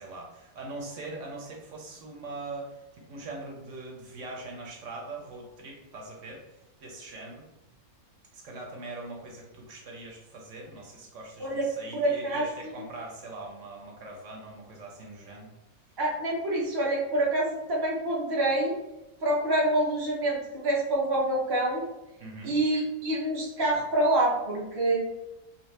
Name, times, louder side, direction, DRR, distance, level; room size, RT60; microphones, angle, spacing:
voice 1, 0.0-7.5 8.3-15.5 22.2-22.5, right 2 dB, 65° right, -1 dB, 1.0 m, -42 dB
voice 2, 11.9-12.8 16.0-18.7 19.2-21.8 22.4-25.0, right 1 dB, 30° right, -4 dB, 0.5 m, -26 dB
2.8 x 2.7 x 3.2 m, 0.94 s
omnidirectional pair, 1.5 m